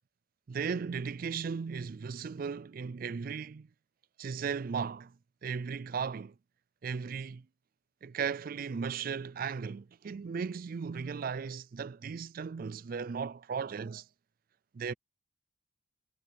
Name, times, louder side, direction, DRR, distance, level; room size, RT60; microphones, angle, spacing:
voice 1, 0.5-3.7 4.2-5.2 5.4-6.3 6.8-7.5 8.0-14.1 14.7-14.9, right 6 dB, 45° right, 0.3 m, -36 dB
head